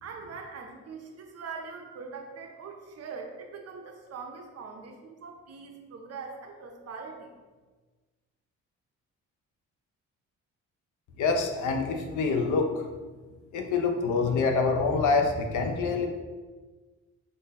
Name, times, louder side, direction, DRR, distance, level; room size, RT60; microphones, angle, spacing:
voice 1, 0.0-7.4, right 5 dB, 55° right, 2 dB, 0.7 m, -42 dB
voice 2, 11.2-12.8 13.5-16.1, left 4 dB, 75° left, 3 dB, 0.7 m, -26 dB
3.8 x 2.7 x 4.0 m, 1.3 s
cardioid pair, 90°, 30 cm